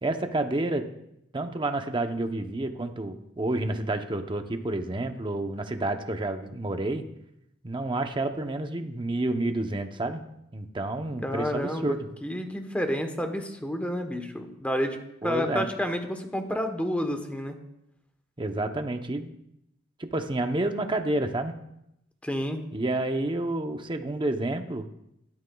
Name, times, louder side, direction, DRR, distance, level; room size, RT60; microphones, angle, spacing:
voice 1, 0.0-0.9 1.3-7.1 7.6-10.2 10.5-12.1 15.2-15.7 18.4-19.3 20.0-21.5 22.7-24.9, right 2 dB, 25° right, 6 dB, 0.8 m, -29 dB
voice 2, 11.2-15.0 15.2-17.5 22.2-22.6, equal, 5° left, 5 dB, 1.0 m, -30 dB
13.0 x 13.0 x 2.3 m, 0.82 s
head